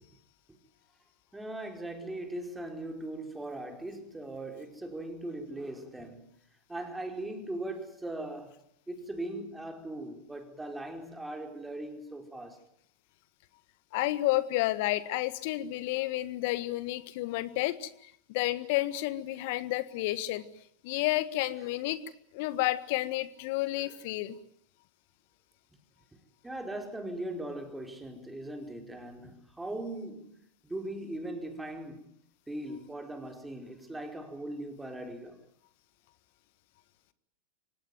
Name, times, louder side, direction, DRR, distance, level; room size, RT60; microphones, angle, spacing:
voice 1, 1.3-6.3 6.7-8.6 8.9-12.6 23.8-23.9 26.4-30.4 30.6-32.0 32.5-35.4, right 1 dB, 10° right, 4.9 m, -39 dB
voice 2, 13.9-17.9 18.3-20.4 20.8-22.0 22.3-24.4, left 17 dB, 55° left, 1.6 m, -30 dB
25.0 x 18.5 x 9.4 m
hypercardioid pair, 90°, 0 cm